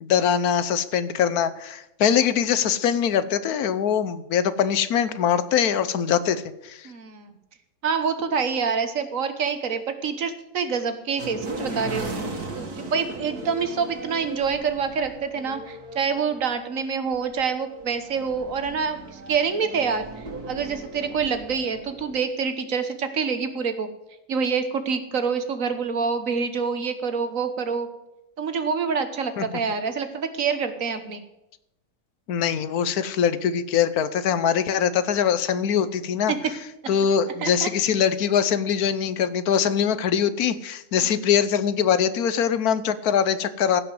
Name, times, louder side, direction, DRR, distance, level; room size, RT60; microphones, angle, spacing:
voice 1, 0.0-6.9 29.4-29.5 32.3-36.3 36.9-43.8, left 8 dB, 80° left, 14 dB, 1.3 m, -22 dB
voice 2, 6.8-7.3 7.8-12.1 12.6-20.1 20.5-23.9 24.3-27.9 28.4-31.2 36.3-36.4 37.4-37.7 41.0-41.1, right 5 dB, 60° right, 9 dB, 1.5 m, -26 dB
sound 1, 11.2-22.2, right 2 dB, 85° right, 2.4 m, -37 dB
16.0 x 5.8 x 7.7 m, 0.89 s
omnidirectional pair, 1.6 m